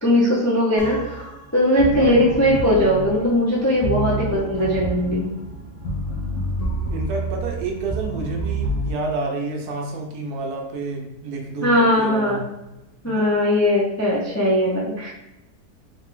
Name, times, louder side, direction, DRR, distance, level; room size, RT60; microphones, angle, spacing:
voice 1, 0.0-1.3 1.5-5.3 11.6-12.4 13.0-15.1, left 1 dB, 20° left, -5 dB, 0.4 m, -19 dB
sound 1, 0.8-8.9, right 2 dB, 55° left, 1.2 m, -28 dB
voice 2, 6.9-12.7 13.0-13.4, right 3 dB, 75° right, 1 dB, 1.3 m, -30 dB
3.5 x 3.2 x 3.7 m, 0.93 s
omnidirectional pair, 1.7 m